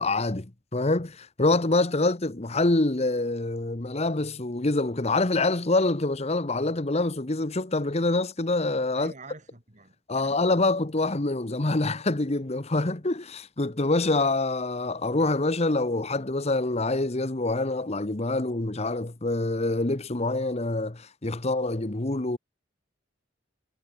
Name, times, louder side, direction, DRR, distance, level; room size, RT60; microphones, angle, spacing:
voice 1, 0.0-9.1 10.1-22.4, left 2 dB, 35° left, 1.1 m, -26 dB
voice 2, 9.0-10.4, right 3 dB, 40° right, 3.8 m, -47 dB
head